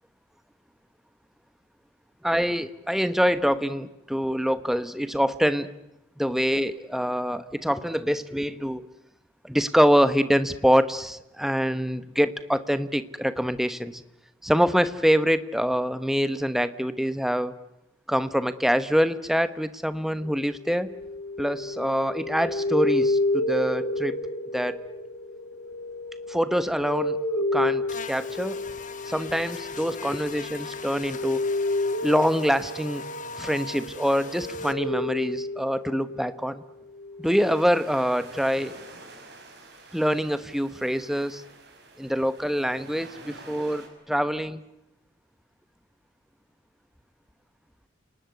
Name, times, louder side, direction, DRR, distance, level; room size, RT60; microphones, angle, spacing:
voice 1, 2.2-5.7 6.2-8.8 9.4-14.0 14.4-17.5 18.1-20.9 21.4-24.2 24.5-24.8 26.3-27.2 27.5-27.8 28.1-28.6 29.1-31.4 32.0-33.0 33.4-36.6 37.2-38.7 39.9-41.4 42.0-44.6, equal, ahead, 12 dB, 1.0 m, -25 dB
sound 1, 20.2-36.5 36.9-37.7, left 2 dB, 65° left, 1.9 m, -31 dB
Buzz, 27.9-34.7, left 5 dB, 40° left, 1.8 m, -40 dB
sound 2, 37.2-43.9, right 2 dB, 55° right, 6.2 m, -47 dB
29.5 x 19.5 x 9.5 m, 0.93 s
head